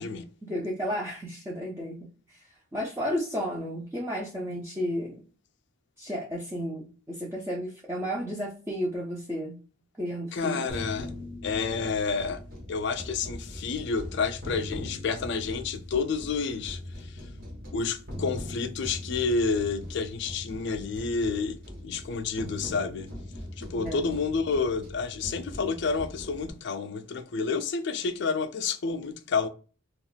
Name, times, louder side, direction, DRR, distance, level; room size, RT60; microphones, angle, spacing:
voice 1, 0.4-2.4 2.7-5.2 6.0-9.6 10.0-10.9 23.8-24.0, equal, 15° right, 0.5 m, -33 dB
voice 2, 10.3-11.1 11.4-12.4 12.7-17.3 17.7-23.1 23.6-29.5, left 4 dB, 55° left, 0.3 m, -30 dB
sound 1, 10.7-26.5, left 1 dB, 45° right, 1.1 m, -40 dB
2.4 x 2.3 x 3.8 m
head